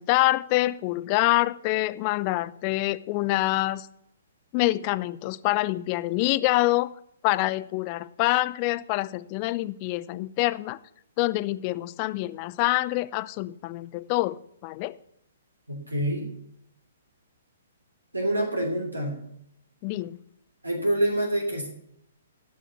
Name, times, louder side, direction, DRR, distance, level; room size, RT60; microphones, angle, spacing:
voice 1, 0.0-3.9 4.5-6.9 7.2-10.8 11.2-15.0 19.8-20.2, left 18 dB, 30° left, 0.5 m, -26 dB
voice 2, 15.7-16.3 18.1-19.2 20.6-21.7, right 1 dB, 80° right, 2.8 m, -26 dB
13.5 x 6.3 x 6.9 m
figure-of-eight pair, 120°, 0 cm